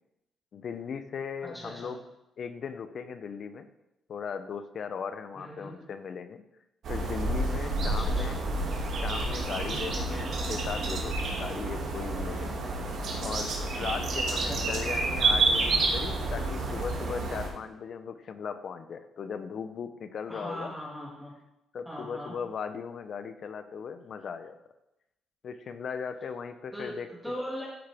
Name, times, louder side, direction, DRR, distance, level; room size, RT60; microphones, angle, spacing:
voice 1, 0.5-2.0 2.4-3.7 4.1-6.4 6.9-8.4 8.9-12.6 13.2-20.7 21.7-24.6 25.4-27.1, left 6 dB, 55° left, 10 dB, 0.7 m, -38 dB
voice 2, 1.4-1.9 5.4-5.8 7.8-8.4 14.4-14.7 20.3-21.4 21.9-22.4 26.7-27.7, equal, ahead, -5 dB, 1.8 m, -39 dB
sound 1, 6.8-17.5, right 2 dB, 60° right, 2.2 m, -29 dB
14.0 x 5.0 x 3.5 m, 0.89 s
cardioid pair, 90°, 0 cm